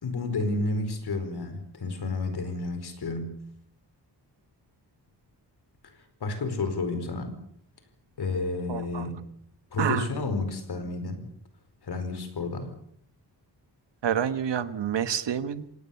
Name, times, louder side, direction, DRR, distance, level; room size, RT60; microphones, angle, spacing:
voice 1, 0.0-3.4 6.2-7.4 8.2-9.2 9.7-11.2 11.8-12.7, left 3 dB, 65° left, 9 dB, 4.8 m, -31 dB
voice 2, 8.7-9.1 9.8-10.1 14.0-15.8, right 9 dB, 90° right, 12 dB, 1.4 m, -28 dB
26.5 x 18.5 x 7.2 m, 0.69 s
wide cardioid pair, 160°, 41 cm